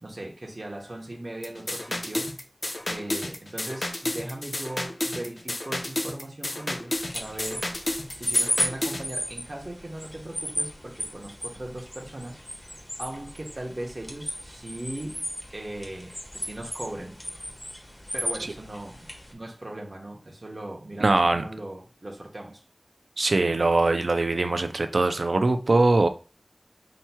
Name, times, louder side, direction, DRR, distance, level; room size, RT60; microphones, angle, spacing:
voice 1, 0.0-2.3 2.8-7.7 8.1-12.4 13.0-15.2 15.5-17.2 18.1-22.6, right 1 dB, 55° right, 0.9 m, -38 dB
sound 1, 1.4-9.0, left 1 dB, 65° left, 0.7 m, -31 dB
sound 2, 6.9-19.3, equal, 20° left, 1.2 m, -34 dB
voice 2, 21.0-21.4 23.2-26.1, right 2 dB, 90° right, 0.4 m, -22 dB
5.5 x 2.9 x 2.2 m
wide cardioid pair, 40°, 0 cm